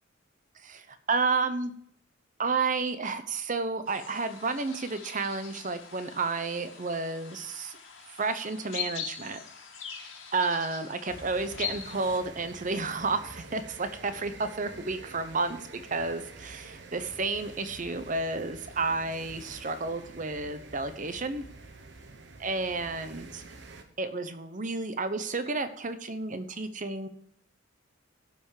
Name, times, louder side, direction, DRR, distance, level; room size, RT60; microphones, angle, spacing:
voice 1, 0.6-1.7 2.4-7.8 8.2-9.4 10.3-21.4 22.4-23.4 24.0-27.1, right 3 dB, 40° right, 10 dB, 0.9 m, -31 dB
sound 1, 3.9-12.2, left 7 dB, 85° left, 2.2 m, -42 dB
sound 2, 11.1-23.8, right 3 dB, 60° right, 1.2 m, -48 dB
16.0 x 5.7 x 4.9 m, 0.68 s
head